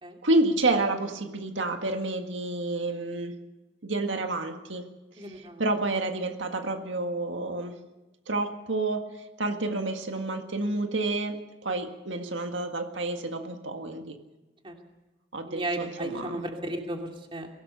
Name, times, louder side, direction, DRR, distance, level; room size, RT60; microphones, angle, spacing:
voice 1, 0.2-3.3 3.8-4.8 5.2-7.7 8.3-9.0 9.4-14.2 15.3-16.4, right 2 dB, 90° right, 5 dB, 1.9 m, -29 dB
voice 2, 5.2-5.6 14.6-14.7 15.5-17.5, right 1 dB, 30° right, 2 dB, 2.8 m, -34 dB
23.0 x 17.5 x 6.8 m, 1.1 s
head